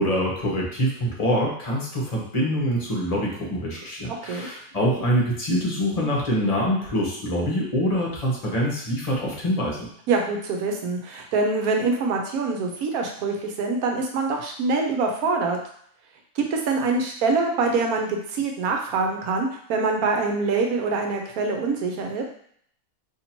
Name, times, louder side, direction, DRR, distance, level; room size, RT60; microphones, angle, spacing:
voice 1, 0.0-9.9, equal, 30° left, -3 dB, 0.8 m, -25 dB
voice 2, 10.1-15.6 16.4-22.2, right 4 dB, 75° right, 2 dB, 1.1 m, -24 dB
2.9 x 2.7 x 4.3 m, 0.64 s
omnidirectional pair, 1.6 m